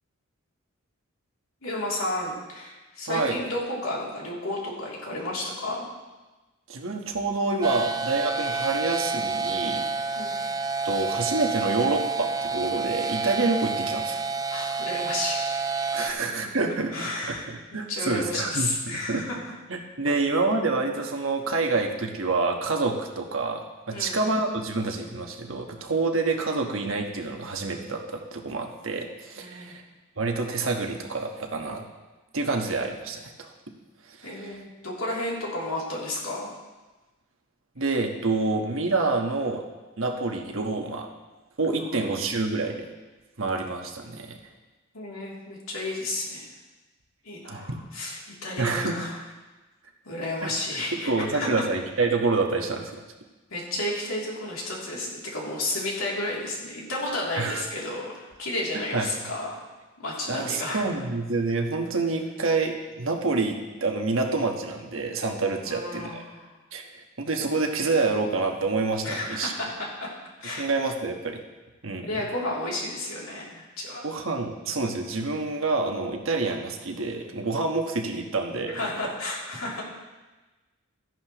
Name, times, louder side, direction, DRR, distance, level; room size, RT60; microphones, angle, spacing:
voice 1, 1.6-5.9 10.1-10.4 14.5-15.4 16.0-16.2 16.9-17.4 17.9-19.4 20.0-20.1 23.9-24.2 29.4-29.8 34.2-36.5 41.8-41.9 44.9-46.5 47.2-49.2 50.0-51.6 53.5-59.6 60.0-60.9 65.6-66.5 69.0-70.1 70.4-70.7 72.0-74.0 78.7-79.8, left 1 dB, 80° left, -4 dB, 2.9 m, -32 dB
voice 2, 3.1-3.4 6.7-9.8 10.8-14.2 15.9-19.2 19.7-29.8 30.2-31.8 32.3-33.5 34.1-34.6 37.8-39.6 40.0-41.1 41.6-42.8 43.4-44.4 47.4-47.8 48.6-49.0 50.4-50.5 51.0-52.9 57.4-57.6 58.7-59.1 60.3-66.2 66.7-69.5 70.6-71.4 71.8-72.2 74.0-78.8, right 3 dB, 70° right, 3 dB, 1.3 m, -27 dB
sound 1, 7.6-16.1, right 4 dB, 15° right, 0.3 m, -29 dB
14.0 x 10.5 x 3.0 m, 1.2 s
head